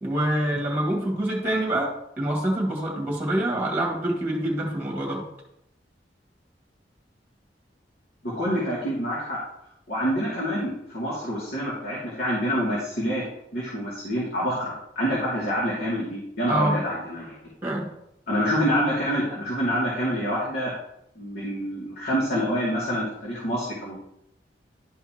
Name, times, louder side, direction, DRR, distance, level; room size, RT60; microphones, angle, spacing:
voice 1, 0.0-5.2 16.5-16.8 17.6-17.9, right 1 dB, 10° right, -1 dB, 2.1 m, -26 dB
voice 2, 8.2-9.4 9.9-13.2 13.5-17.4 18.3-20.7 21.2-24.0, equal, 60° left, -7 dB, 2.6 m, -27 dB
11.5 x 5.6 x 3.0 m, 0.78 s
head